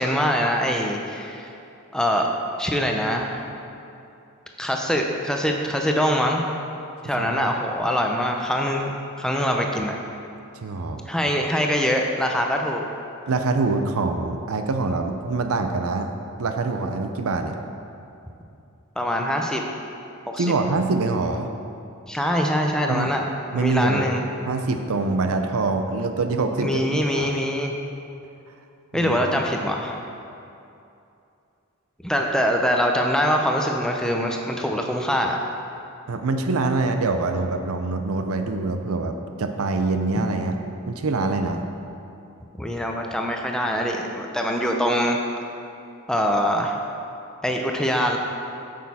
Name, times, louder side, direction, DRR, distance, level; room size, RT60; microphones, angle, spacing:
voice 1, 0.0-1.5 1.9-2.3 2.6-3.4 4.6-6.4 7.0-10.0 11.1-12.9 19.0-19.6 20.3-20.5 22.1-23.2 23.5-24.2 26.6-27.7 28.9-30.0 32.0-35.4 42.6-45.2 46.1-46.8 47.4-48.2, equal, 5° left, 1 dB, 0.4 m, -23 dB
voice 2, 7.2-7.5 10.6-11.0 13.3-16.1 16.4-17.5 20.4-21.5 22.9-23.1 23.5-24.1 24.5-26.8 27.2-27.3 28.9-29.4 36.1-40.6 40.9-41.6, right 3 dB, 80° right, 6 dB, 0.6 m, -24 dB
8.5 x 6.3 x 4.2 m, 2.7 s
head